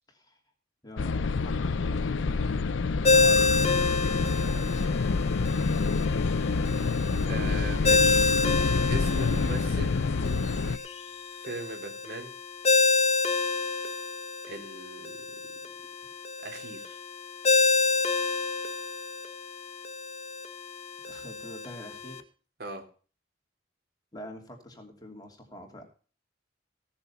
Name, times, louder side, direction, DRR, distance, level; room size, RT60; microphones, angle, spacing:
voice 1, 0.1-0.4 0.8-2.6 3.1-4.6 21.0-22.2 24.1-25.8, equal, 20° left, 2 dB, 3.0 m, -45 dB
sound 1, 1.0-10.8, left 4 dB, 85° left, 0.6 m, -27 dB
sound 2, 2.9-4.4 8.5-11.8, left 2 dB, 65° left, 2.2 m, -48 dB
Ringtone, 3.0-22.2, left 3 dB, 35° left, 1.1 m, -28 dB
voice 2, 7.3-8.3 8.9-10.0 11.4-12.3 14.5-15.3 16.4-17.0 22.6-22.8, right 2 dB, 55° right, 3 dB, 3.5 m, -39 dB
16.0 x 7.2 x 5.8 m, 0.39 s
head